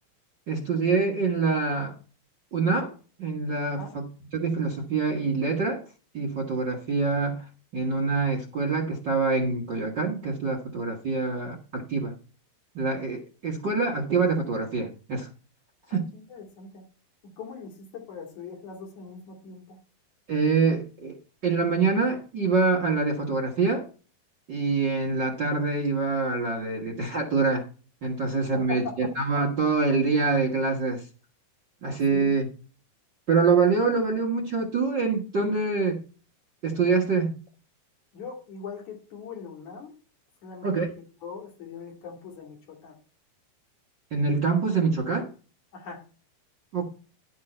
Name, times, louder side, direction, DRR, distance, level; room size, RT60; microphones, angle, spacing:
voice 1, 0.5-2.0 2.5-2.9 3.2-5.8 6.1-7.4 7.7-12.1 12.7-15.3 15.9-16.1 20.3-21.2 21.4-23.9 24.5-27.7 28.0-31.0 31.8-32.5 33.3-36.0 36.6-37.4 40.6-40.9 44.1-45.3 46.7-46.8, right 4 dB, 60° right, 0 dB, 1.1 m, -25 dB
voice 2, 15.9-16.8 17.4-19.8 28.5-29.1 32.1-32.4 38.1-39.9 40.4-40.8 41.2-43.0 45.7-46.0, left 5 dB, 55° left, 2 dB, 3.7 m, -41 dB
11.0 x 7.4 x 4.3 m, 0.37 s
omnidirectional pair, 4.4 m